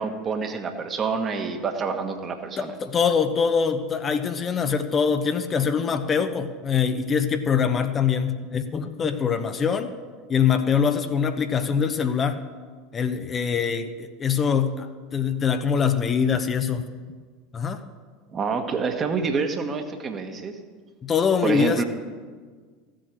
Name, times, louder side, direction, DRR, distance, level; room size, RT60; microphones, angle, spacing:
voice 1, 0.0-2.7 18.3-20.5 21.4-21.8, right 5 dB, 30° right, 6 dB, 1.4 m, -27 dB
voice 2, 2.6-9.9 10.3-12.4 12.9-14.9 15.1-16.8 17.5-17.8 21.0-21.8, left 6 dB, 30° left, 8 dB, 0.8 m, -23 dB
15.0 x 7.7 x 6.3 m, 1.5 s
figure-of-eight pair, 75°, 0 cm